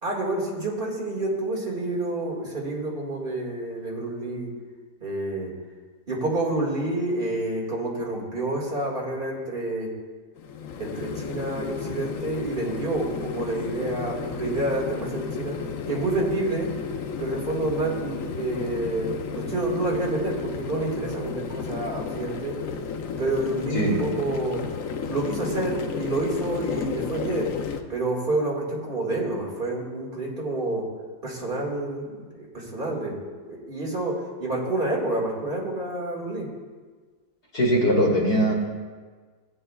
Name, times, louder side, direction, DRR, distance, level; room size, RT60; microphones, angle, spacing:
voice 1, 0.0-4.5 5.0-5.5 6.1-9.9 10.8-15.6 15.9-16.7 17.2-22.6 23.2-24.6 25.1-27.5 27.9-30.9 31.2-33.2 33.4-36.5, right 2 dB, 30° right, -3 dB, 2.1 m, -28 dB
sound 1, 10.4-27.8, left 6 dB, 65° left, 0.9 m, -33 dB
voice 2, 37.5-38.5, equal, 40° left, -3 dB, 2.4 m, -21 dB
16.5 x 8.9 x 2.3 m, 1.5 s
omnidirectional pair, 1.9 m